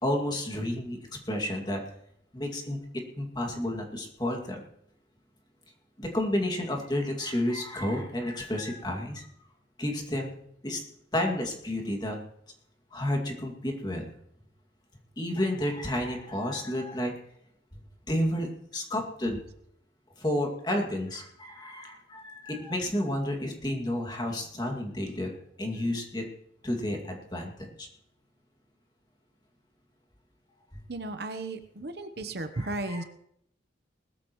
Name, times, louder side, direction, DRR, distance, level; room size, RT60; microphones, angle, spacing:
voice 1, 0.0-1.8 2.3-2.8 3.2-4.6 6.0-9.3 9.8-10.3 10.6-10.8 11.1-12.2 12.9-14.1 15.2-17.1 18.1-19.4 20.2-25.3 25.6-26.2 26.6-27.9 32.5-33.0, left 1 dB, 20° left, 1 dB, 2.3 m, -31 dB
voice 2, 30.9-33.0, right 2 dB, 60° right, 9 dB, 0.9 m, -35 dB
20.0 x 13.5 x 3.1 m, 0.74 s
head